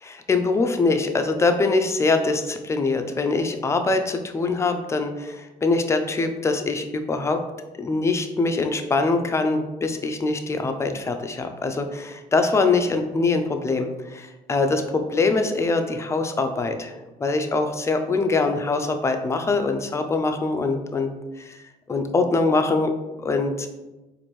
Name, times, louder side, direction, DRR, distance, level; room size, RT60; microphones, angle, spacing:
voice 1, 0.0-7.4 7.8-16.9 17.2-21.1 21.4-22.9 23.2-23.7, left 3 dB, 15° left, 6 dB, 0.4 m, -23 dB
4.3 x 2.6 x 3.0 m, 1.1 s
cardioid pair, 110°, 17 cm